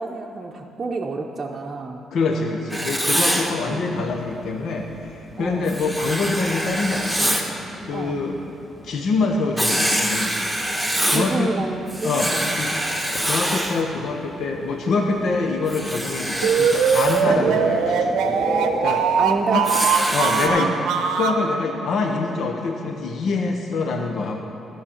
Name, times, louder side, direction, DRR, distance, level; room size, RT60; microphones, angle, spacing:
voice 1, 0.0-2.0 3.7-4.1 5.4-5.7 7.9-8.2 11.0-12.6 15.2-15.4 17.2-17.5 19.2-19.7 20.4-20.8, right 3 dB, 35° right, -1 dB, 0.7 m, -29 dB
voice 2, 2.1-7.4 7.8-8.4 8.8-10.4 11.0-11.5 12.0-12.8 13.2-18.2 18.8-19.0 19.5-19.6 20.1-20.7 21.1-24.4, left 3 dB, 65° left, 2 dB, 0.8 m, -25 dB
Writing, 2.7-3.5 5.7-7.5 9.6-11.3 11.9-13.8 15.7-17.2 19.6-20.5, equal, 5° left, 1.4 m, -24 dB
sound 1, 3.3-20.4, equal, 25° left, 1.7 m, -37 dB
sound 2, 16.4-21.4, right 6 dB, 90° right, 0.7 m, -21 dB
12.5 x 5.7 x 7.2 m, 2.9 s
cardioid pair, 90°, 0 cm